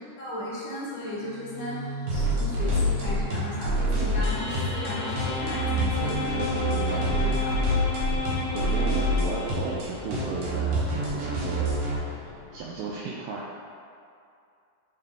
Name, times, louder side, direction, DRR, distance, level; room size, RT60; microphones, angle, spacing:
voice 1, 0.2-1.8 2.1-7.6 8.4-8.7, left 1 dB, 55° left, -8 dB, 2.1 m, -36 dB
sound 1, 1.1-12.9, left 1 dB, 85° left, 1.8 m, -40 dB
sound 2, 2.1-12.0, right 1 dB, 70° right, 1.9 m, -27 dB
sound 3, 4.2-10.0, left 3 dB, 70° left, 2.4 m, -33 dB
voice 2, 6.7-7.3 8.5-11.8 12.2-13.5, right 4 dB, 85° right, -4 dB, 1.9 m, -35 dB
8.4 x 3.5 x 3.4 m, 2.4 s
omnidirectional pair, 4.4 m